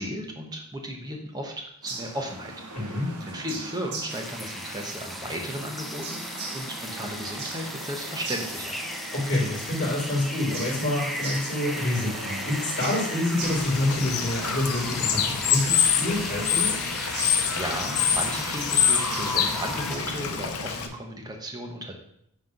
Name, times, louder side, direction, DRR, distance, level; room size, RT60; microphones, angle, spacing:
voice 1, 0.0-2.9 3.3-8.8 17.2-21.9, equal, 15° right, 2 dB, 1.0 m, -35 dB
sound 1, 1.8-20.4, right 3 dB, 85° right, 1.4 m, -41 dB
voice 2, 2.7-3.1 9.1-16.8, left 1 dB, 35° left, -7 dB, 3.3 m, -27 dB
sound 2, 4.1-20.0, left 1 dB, ahead, 0.5 m, -36 dB
Bird / Water, 13.4-20.9, left 8 dB, 85° left, 0.8 m, -26 dB
9.5 x 3.2 x 5.2 m, 0.73 s
head